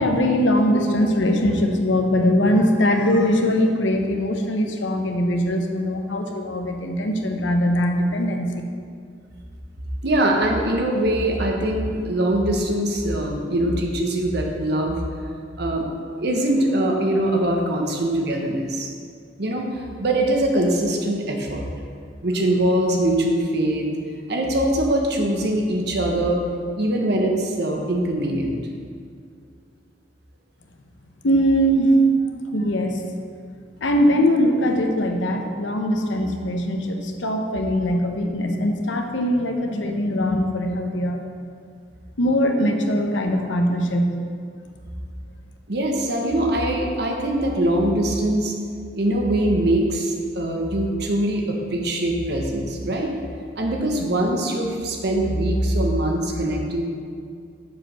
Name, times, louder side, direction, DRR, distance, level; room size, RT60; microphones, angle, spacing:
voice 1, 0.0-8.6 31.2-32.0 32.5-33.1 33.8-41.2 42.2-44.1, equal, 85° left, 4 dB, 0.8 m, -21 dB
voice 2, 10.0-15.0 15.6-15.9 16.2-18.9 19.4-21.6 22.2-23.9 24.3-26.4 26.8-28.5 45.7-48.5 48.9-53.1 53.6-56.8, right 1 dB, 60° right, 1 dB, 1.1 m, -22 dB
6.7 x 5.1 x 6.6 m, 2.2 s
head